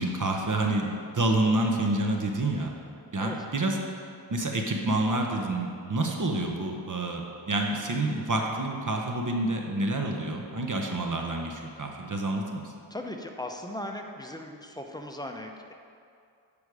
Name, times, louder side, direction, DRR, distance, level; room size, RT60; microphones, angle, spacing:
voice 1, 0.0-2.7 3.1-3.8 4.3-12.7, right 2 dB, 40° right, 2 dB, 0.9 m, -28 dB
voice 2, 12.9-15.7, left 1 dB, 10° left, 3 dB, 0.7 m, -38 dB
8.3 x 5.2 x 4.8 m, 2.5 s
cardioid pair, 60°, 46 cm